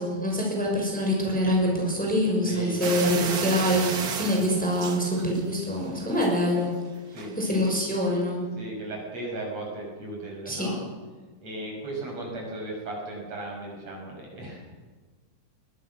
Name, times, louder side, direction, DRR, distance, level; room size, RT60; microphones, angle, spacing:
voice 1, 0.0-6.7 7.4-8.4 10.5-10.7, equal, ahead, -2 dB, 6.0 m, -25 dB
voice 2, 2.4-2.8 3.2-3.4 4.3-4.5 7.1-7.6 8.6-10.9 11.4-14.6, right 2 dB, 45° right, -1 dB, 7.8 m, -36 dB
sound 1, 2.8-5.7 6.0-6.5 7.2-7.3 7.7-7.8, right 5 dB, 90° right, 0.8 m, -33 dB
22.5 x 22.5 x 6.5 m, 1.4 s
omnidirectional pair, 4.1 m